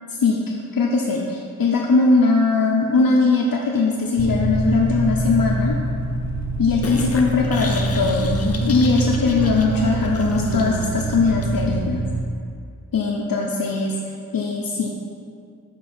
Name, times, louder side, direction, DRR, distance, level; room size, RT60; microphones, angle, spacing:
voice 1, 0.1-0.4 0.7-5.8 6.6-8.3 8.7-12.0 12.9-14.0 14.3-14.9, left 4 dB, 85° left, -2 dB, 0.6 m, -20 dB
sound 1, 4.2-12.2, right 2 dB, 55° right, 0.7 m, -25 dB
sound 2, 6.8-11.8, left 3 dB, 45° left, 0.7 m, -29 dB
7.2 x 4.4 x 4.3 m, 2.3 s
wide cardioid pair, 55°, 34 cm